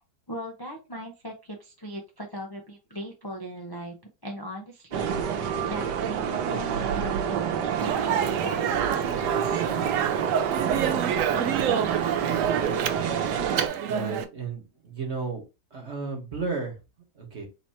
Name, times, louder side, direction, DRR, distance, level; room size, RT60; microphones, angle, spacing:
voice 1, 0.3-4.0 4.2-9.8, equal, 30° left, 0 dB, 0.4 m, -39 dB
sound 1, 4.9-13.7, right 8 dB, 85° right, 1.4 m, -27 dB
Speech, 7.8-14.2, right 8 dB, 65° right, 0.8 m, -29 dB
voice 2, 13.9-15.4 15.7-16.8 17.1-17.5, right 4 dB, 45° right, 1 dB, 1.6 m, -33 dB
4.1 x 2.9 x 4.3 m, 0.28 s
omnidirectional pair, 1.8 m